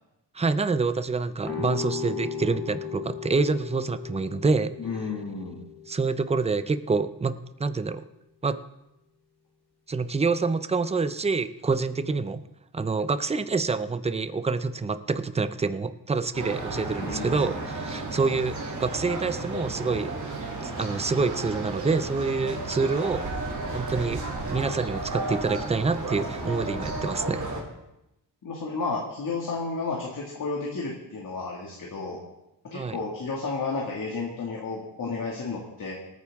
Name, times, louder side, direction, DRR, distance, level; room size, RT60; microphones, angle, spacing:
voice 1, 0.3-4.7 5.9-8.0 8.4-8.6 9.9-12.4 12.7-20.1 20.6-23.2 23.7-24.2 24.5-27.4 32.7-33.0, right 4 dB, 15° right, 12 dB, 0.5 m, -27 dB
sound 1, 1.4-7.2, left 7 dB, ahead, 3.8 m, -37 dB
voice 2, 4.8-5.6 17.0-17.5 26.4-26.7 28.4-32.2 32.7-35.9, left 4 dB, 50° left, -2 dB, 2.1 m, -32 dB
sound 2, 16.3-27.6, right 2 dB, 45° right, 2.8 m, -33 dB
25.5 x 9.3 x 3.6 m, 0.90 s
wide cardioid pair, 175°, 41 cm